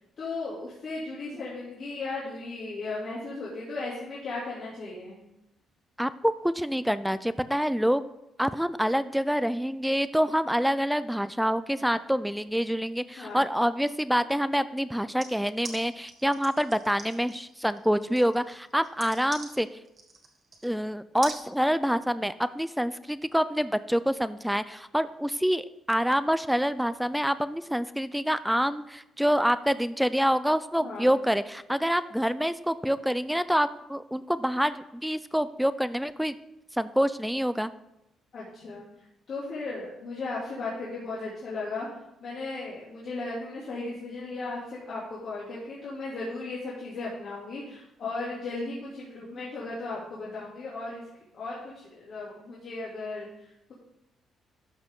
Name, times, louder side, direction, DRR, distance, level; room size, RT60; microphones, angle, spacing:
voice 1, 0.2-5.2 13.2-13.4 30.8-31.2 38.3-38.8 39.3-41.9 42.2-51.0 51.3-53.7, left 3 dB, 55° left, -7 dB, 2.6 m, -36 dB
voice 2, 6.0-8.1 8.4-19.7 20.6-36.3 36.8-37.7, equal, ahead, 14 dB, 0.4 m, -26 dB
sound 1, 15.2-20.8 21.2-21.4, right 3 dB, 40° right, 1.7 m, -42 dB
12.0 x 5.8 x 3.7 m, 0.87 s
cardioid pair, 90°, 0 cm